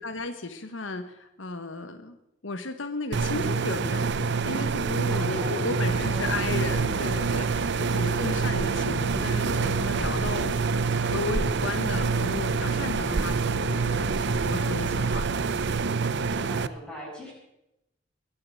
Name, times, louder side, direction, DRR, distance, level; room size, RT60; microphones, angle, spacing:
voice 1, 0.0-2.2 2.4-10.6 11.0-15.2, left 3 dB, 75° left, 9 dB, 1.2 m, -34 dB
sound 1, 3.1-16.7, right 5 dB, 65° right, 0.6 m, -26 dB
voice 2, 5.1-6.6 7.8-8.4 16.2-17.3, equal, 5° left, -4 dB, 7.6 m, -41 dB
sound 2, 5.9-15.9, right 1 dB, 80° right, 3.1 m, -37 dB
21.5 x 8.6 x 7.6 m, 0.89 s
head